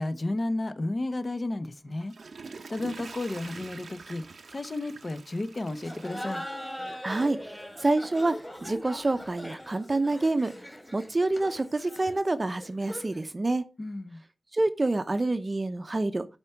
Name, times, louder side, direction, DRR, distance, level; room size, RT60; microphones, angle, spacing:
voice 1, 0.0-2.1 2.7-4.2 4.5-6.4 13.8-14.2, left 2 dB, 40° left, 0.8 m, -32 dB
Water / Toilet flush, 1.9-7.2 7.6-7.7, right 4 dB, 85° right, 0.6 m, -45 dB
Laughter, 5.8-13.2, equal, 10° left, 2.1 m, -41 dB
voice 2, 7.0-8.3 8.6-10.5 10.9-13.6 14.5-16.3, right 2 dB, 35° right, 0.6 m, -27 dB
11.5 x 4.4 x 4.5 m
wide cardioid pair, 85°, 0 cm